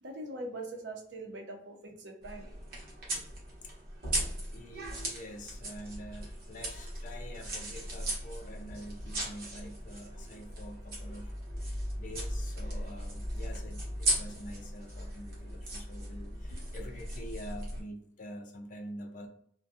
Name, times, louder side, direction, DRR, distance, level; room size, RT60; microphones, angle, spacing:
voice 1, 0.0-2.5, right 2 dB, 85° right, 2 dB, 0.6 m, -42 dB
sound 1, 2.2-17.8, right 1 dB, 55° right, 1.0 m, -37 dB
voice 2, 4.5-11.3 11.6-19.3, equal, 45° left, 4 dB, 0.4 m, -46 dB
2.6 x 2.2 x 2.4 m, 0.64 s
head